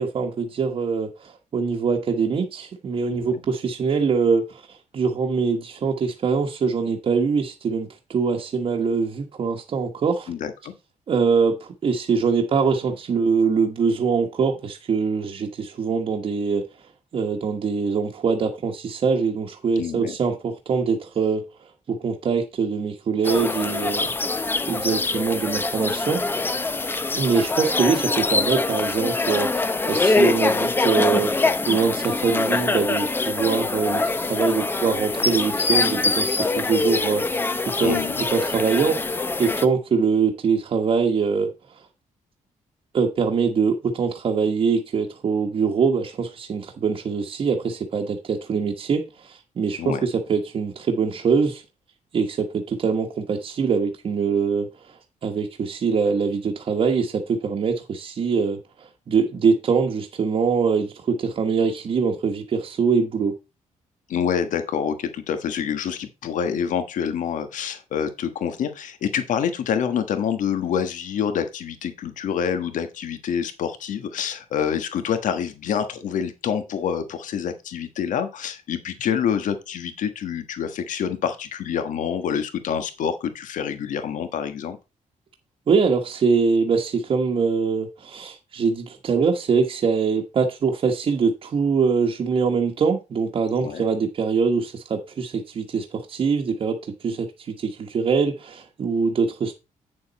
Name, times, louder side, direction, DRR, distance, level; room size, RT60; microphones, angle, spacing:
voice 1, 0.0-4.6 4.9-10.3 11.1-16.7 17.1-21.5 21.9-26.2 27.2-38.0 38.3-41.5 42.9-51.6 52.1-63.4 85.7-99.5, right 5 dB, 40° right, 1.2 m, -23 dB
voice 2, 3.1-3.4 10.3-10.7 19.8-20.2 37.8-38.2 49.8-50.0 64.1-84.8 93.6-93.8, left 8 dB, 70° left, 1.4 m, -27 dB
sound 1, 23.2-39.7, left 3 dB, 15° left, 0.6 m, -24 dB
8.8 x 6.9 x 4.2 m
wide cardioid pair, 170°, 14 cm